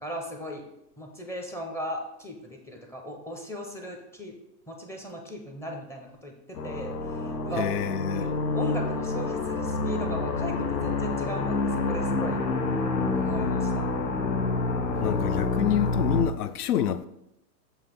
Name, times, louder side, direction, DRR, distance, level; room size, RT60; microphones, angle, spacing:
voice 1, 0.0-0.6 1.0-4.4 4.7-7.8 8.1-11.5 11.8-12.4 13.1-13.8, equal, 5° left, 0.6 m, -37 dB
sound 1, 6.5-16.2, left 3 dB, 85° left, 1.1 m, -28 dB
voice 2, 7.6-8.3 14.9-17.1, left 10 dB, 65° left, 0.6 m, -27 dB
7.3 x 2.9 x 5.8 m
hypercardioid pair, 120°, 49 cm